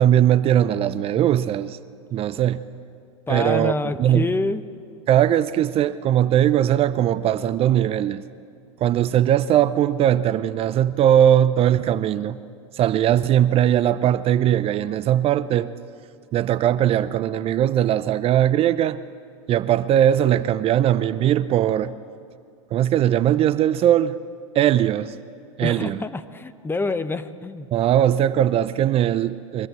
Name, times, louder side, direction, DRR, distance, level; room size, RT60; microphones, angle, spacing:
voice 1, 0.0-1.8 2.1-2.6 3.3-4.3 5.1-8.2 8.8-12.4 12.7-15.7 16.3-19.0 19.5-21.9 22.7-24.2 24.5-25.1 25.6-26.0 27.7-29.7, right 11 dB, 35° right, 14 dB, 0.7 m, -19 dB
voice 2, 3.3-4.6 25.6-27.7, left 3 dB, 15° left, 12 dB, 1.0 m, -27 dB
23.5 x 21.0 x 8.3 m, 2.3 s
hypercardioid pair, 100°, 16 cm